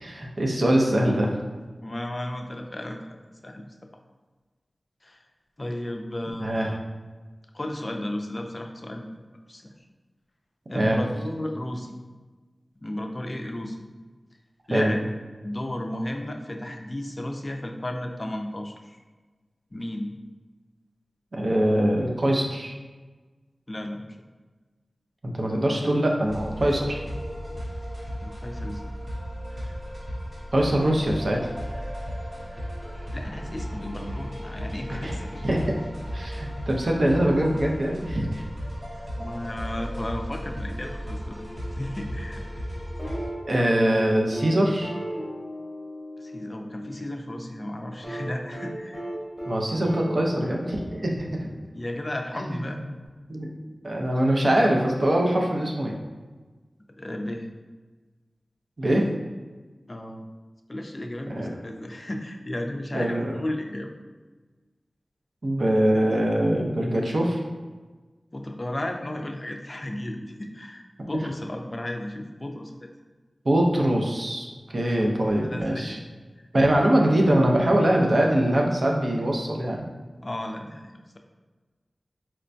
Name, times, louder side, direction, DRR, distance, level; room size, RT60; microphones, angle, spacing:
voice 1, 0.0-1.4 6.4-6.7 10.7-11.0 14.7-14.9 21.3-22.7 25.2-27.0 30.5-31.5 35.0-35.2 35.4-35.7 36.1-38.4 43.5-44.9 49.4-51.5 52.4-52.8 53.3-53.5 53.8-56.0 58.8-59.0 61.3-61.5 62.9-63.3 65.4-67.4 73.4-76.0 76.5-79.9, right 1 dB, 55° right, 0 dB, 0.5 m, -23 dB
voice 2, 1.8-3.7 5.0-5.3 5.6-6.8 7.5-9.1 9.5-9.7 10.7-12.0 12.8-13.8 14.7-15.0 15.4-19.0 19.7-20.1 23.7-24.1 28.2-28.9 33.1-35.4 39.2-42.4 46.2-49.0 51.7-52.8 57.0-57.5 59.9-60.3 60.7-63.9 68.3-72.9 75.0-75.1 75.4-76.0 80.2-81.2, left 1 dB, 35° left, 3 dB, 0.4 m, -34 dB
sound 1, 26.2-43.3, equal, 75° right, 1.4 m, -35 dB
sound 2, 43.0-47.1 48.0-51.6 53.1-53.2, right 1 dB, 20° right, 1.0 m, -36 dB
4.3 x 2.1 x 2.6 m, 1.3 s
wide cardioid pair, 85°, 0 cm